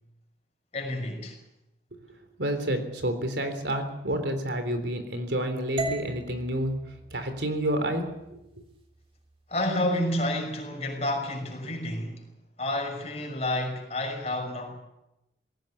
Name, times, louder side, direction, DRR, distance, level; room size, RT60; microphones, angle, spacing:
voice 1, 0.7-1.4 9.5-12.3 12.6-14.8, left 1 dB, 35° left, 6.0 m, -30 dB
voice 2, 2.4-6.7 7.1-8.4, right 1 dB, 80° right, 3.7 m, -29 dB
sound 1, 5.8-9.9, right 2 dB, 30° right, 2.6 m, -39 dB
19.5 x 17.5 x 9.8 m
head